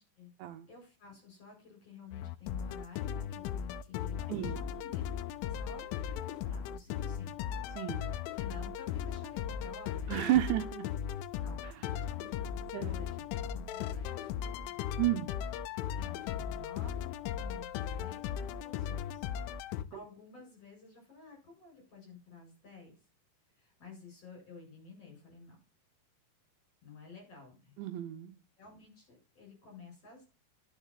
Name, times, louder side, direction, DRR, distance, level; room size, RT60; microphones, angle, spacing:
voice 1, 0.0-0.3 0.7-7.4 8.4-10.1 11.4-12.5 12.8-14.8 16.0-19.2 19.9-22.9 23.6-25.6 26.8-27.8 28.6-30.3, left 5 dB, 30° left, 1 dB, 8.0 m, -52 dB
sound 1, 2.1-19.9, left 9 dB, 85° left, 3.1 m, -37 dB
voice 2, 4.3-4.6 7.8-8.1 10.1-10.9 11.6-11.9 12.7-12.9 15.0-15.3 27.8-28.3, right 15 dB, 75° right, 8 dB, 2.9 m, -32 dB
11.0 x 7.4 x 7.2 m, 0.35 s
omnidirectional pair, 5.5 m